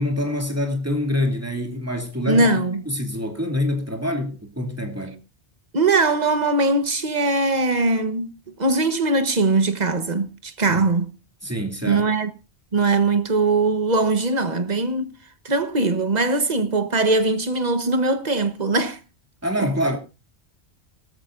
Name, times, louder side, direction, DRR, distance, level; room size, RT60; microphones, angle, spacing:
voice 1, 0.0-2.5 2.9-5.2 10.7-10.8 11.4-12.1 19.4-20.0, left 1 dB, 15° right, 2.8 m, -25 dB
voice 2, 2.3-2.8 5.7-8.3 8.6-11.1 11.9-12.3 12.7-15.1 15.4-19.0 19.6-19.7, right 3 dB, 40° right, 1.4 m, -21 dB
18.0 x 14.5 x 2.6 m
omnidirectional pair, 1.1 m